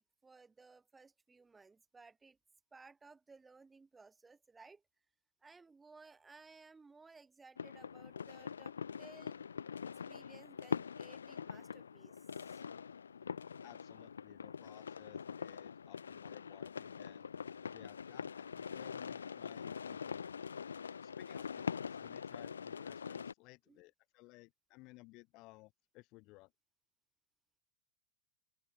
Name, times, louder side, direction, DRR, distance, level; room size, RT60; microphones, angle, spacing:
voice 1, 0.0-2.4 2.7-4.8 5.4-9.4 9.9-12.6 23.7-23.8, right 4 dB, 10° right, 7.6 m, -60 dB
sound 1, 7.6-23.3, left 6 dB, 70° left, 1.6 m, -44 dB
voice 2, 13.6-17.3 17.7-20.3 21.0-26.5, left 23 dB, 40° left, 2.5 m, -59 dB
figure-of-eight pair, 90°, 0 cm